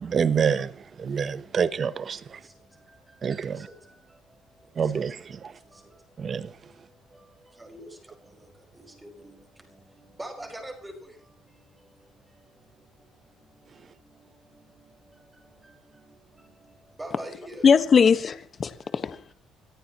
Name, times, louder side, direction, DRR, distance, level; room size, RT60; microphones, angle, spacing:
voice 1, 0.0-2.4 3.2-3.7 4.8-5.5 6.2-6.5, right 6 dB, 40° right, 0.9 m, -27 dB
voice 2, 8.7-9.4 10.2-11.1 17.0-17.6, right 1 dB, 15° right, 5.1 m, -40 dB
voice 3, 17.6-19.3, left 6 dB, 35° left, 1.3 m, -20 dB
26.0 x 14.5 x 3.0 m
cardioid pair, 125°, 0 cm